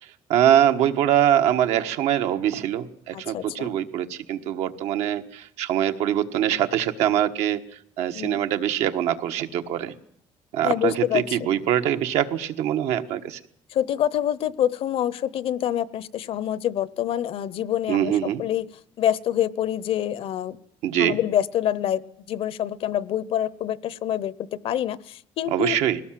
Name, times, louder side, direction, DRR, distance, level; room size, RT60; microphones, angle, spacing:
voice 1, 0.0-9.9 10.5-13.4 17.9-18.4 20.8-21.2 25.5-26.0, right 11 dB, 85° right, 7 dB, 1.4 m, -23 dB
voice 2, 3.1-3.7 8.2-8.4 10.6-11.2 13.7-18.1 18.4-18.7 19.0-20.6 21.0-22.0 22.3-25.8, left 11 dB, 60° left, 19 dB, 0.8 m, -26 dB
21.0 x 18.0 x 7.6 m, 0.65 s
cardioid pair, 135°, 11 cm